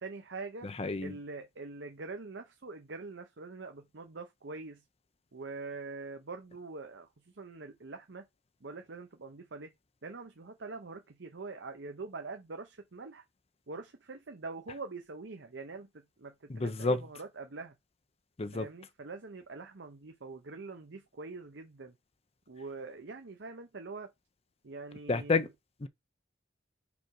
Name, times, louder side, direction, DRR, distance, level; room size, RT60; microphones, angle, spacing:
voice 1, 0.0-0.7 1.0-4.8 5.3-7.1 7.3-8.2 8.6-9.7 10.0-13.2 13.7-15.9 16.2-17.8 18.5-22.0 22.5-24.1 24.6-25.5, right 3 dB, 70° right, 0.8 m, -44 dB
voice 2, 0.6-1.1 16.5-17.0 18.4-18.7 25.1-25.5 25.8-25.9, left 3 dB, 35° left, 0.6 m, -30 dB
5.0 x 4.9 x 4.7 m
head